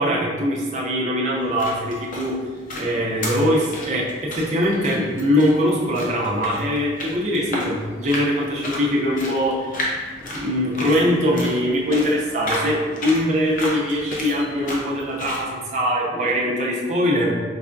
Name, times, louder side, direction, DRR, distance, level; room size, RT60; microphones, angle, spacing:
voice 1, 0.0-2.4 2.7-9.7 10.3-17.3, equal, 40° right, -3 dB, 0.5 m, -22 dB
sound 1, 1.3-15.5, left 1 dB, 45° left, 0.6 m, -33 dB
4.7 x 2.2 x 2.5 m, 1.5 s
head